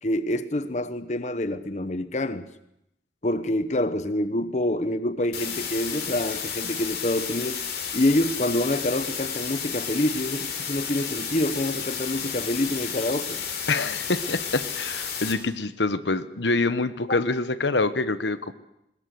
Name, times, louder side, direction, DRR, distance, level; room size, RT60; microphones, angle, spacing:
voice 1, 0.0-2.4 3.2-7.6 7.9-13.4 17.1-17.2, left 1 dB, 40° left, 12 dB, 0.9 m, -26 dB
sound 1, 5.3-15.3, left 7 dB, 60° left, 3.8 m, -32 dB
voice 2, 13.7-18.5, left 3 dB, 85° left, 12 dB, 1.1 m, -26 dB
21.5 x 20.0 x 7.9 m, 0.82 s
head